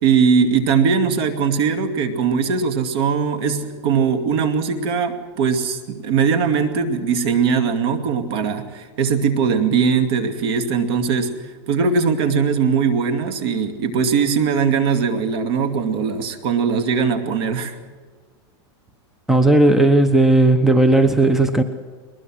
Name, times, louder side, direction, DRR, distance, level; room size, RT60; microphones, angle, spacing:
voice 1, 0.0-11.3 11.7-17.8, right 6 dB, 60° right, 7 dB, 2.4 m, -20 dB
voice 2, 19.3-21.6, right 2 dB, ahead, 9 dB, 0.9 m, -15 dB
21.5 x 20.5 x 6.3 m, 1.5 s
supercardioid pair, 145°, 15 cm